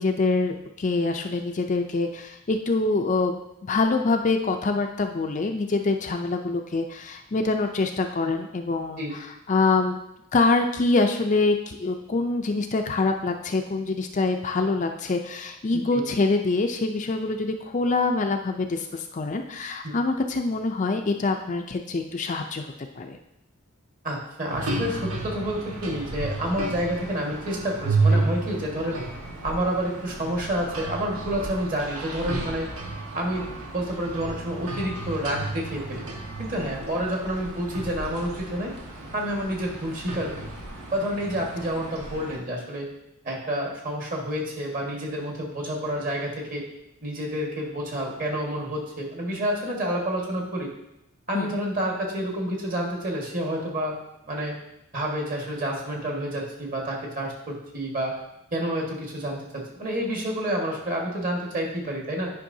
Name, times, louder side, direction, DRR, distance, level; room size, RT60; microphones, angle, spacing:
voice 1, 0.0-10.0 10.3-23.2 51.3-51.5, left 3 dB, 35° left, 4 dB, 0.4 m, -25 dB
voice 2, 15.7-16.0 19.8-19.9 24.0-29.0 29.4-32.7 33.1-36.0 36.4-38.7 39.1-40.5 40.9-42.9 43.2-46.6 47.0-50.7 51.3-53.9 54.3-54.5 54.9-58.1 58.5-62.3, equal, 40° right, -1 dB, 1.6 m, -29 dB
sound 1, 24.5-42.4, right 3 dB, 90° right, 1.4 m, -32 dB
10.0 x 5.4 x 2.7 m, 0.83 s
head